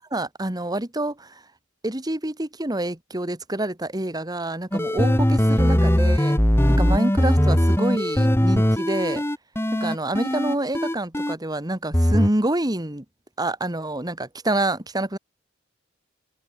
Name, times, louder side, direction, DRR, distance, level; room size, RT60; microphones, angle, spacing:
voice 1, 0.1-1.4 1.8-6.4 6.7-9.2 9.7-13.0 13.4-15.2, right 1 dB, 20° right, 1.8 m, -27 dB
sound 1, 4.7-11.3 11.9-12.3, equal, 15° left, 1.6 m, -20 dB
head